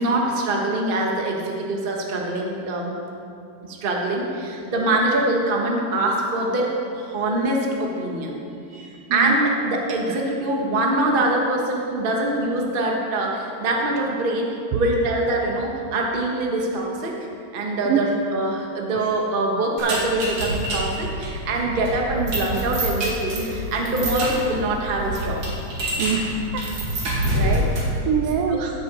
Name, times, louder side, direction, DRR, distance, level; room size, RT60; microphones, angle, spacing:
voice 1, 0.0-2.9 3.7-8.4 8.8-17.1 17.5-25.4 27.3-27.8 28.5-28.7, right 2 dB, 60° right, -1 dB, 0.5 m, -24 dB
voice 2, 8.7-9.4 14.7-14.8 17.8-18.0 26.0-26.6 27.2-27.7 28.1-28.6, right 7 dB, 90° right, 3 dB, 1.3 m, -25 dB
sound 1, 19.8-28.0, right 1 dB, 45° right, 2.7 m, -27 dB
15.5 x 6.9 x 4.8 m, 2.6 s
omnidirectional pair, 3.4 m